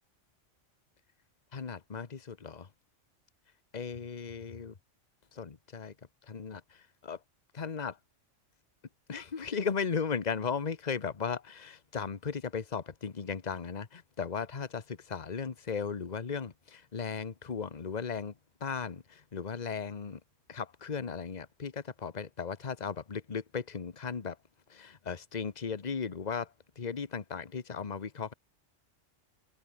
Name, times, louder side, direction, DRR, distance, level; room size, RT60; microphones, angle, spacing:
voice 1, 1.5-2.7 3.7-4.7 5.3-5.9 6.3-7.2 7.5-8.0 9.1-18.3 18.6-20.2 20.5-24.4 24.7-28.3, left 6 dB, 35° left, 1.2 m, -36 dB
omnidirectional pair, 1.3 m